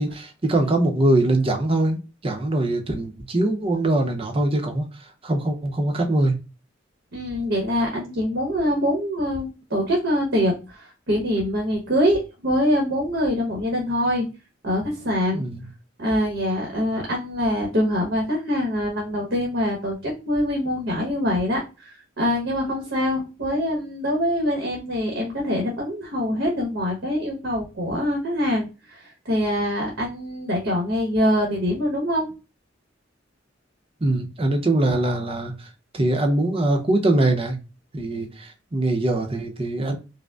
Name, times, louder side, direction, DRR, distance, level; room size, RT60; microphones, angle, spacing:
voice 1, 0.0-6.4 15.3-15.7 34.0-35.7 35.9-37.6 37.9-40.0, right 2 dB, 30° right, 4 dB, 0.7 m, -22 dB
voice 2, 7.1-14.2 14.6-15.4 16.0-32.3, equal, 70° right, -1 dB, 1.0 m, -24 dB
4.9 x 2.1 x 2.3 m, 0.29 s
head